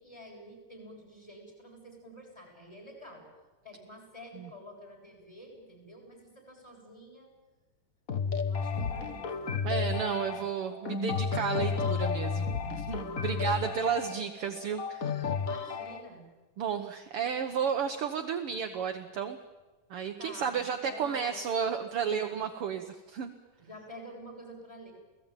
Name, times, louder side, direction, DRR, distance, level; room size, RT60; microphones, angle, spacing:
voice 1, 0.0-3.3 3.6-7.3 8.4-9.9 10.2-10.4 11.6-11.9 13.2-14.1 15.4-16.3 20.2-21.5 22.0-22.4 23.6-24.9, equal, 5° left, 3 dB, 7.4 m, -49 dB
sound 1, 8.1-16.0, left 5 dB, 55° left, 0.9 m, -32 dB
voice 2, 9.6-15.1 16.6-19.4 19.9-23.3, right 7 dB, 65° right, 6 dB, 1.5 m, -32 dB
29.0 x 18.0 x 9.1 m, 1.2 s
omnidirectional pair, 3.9 m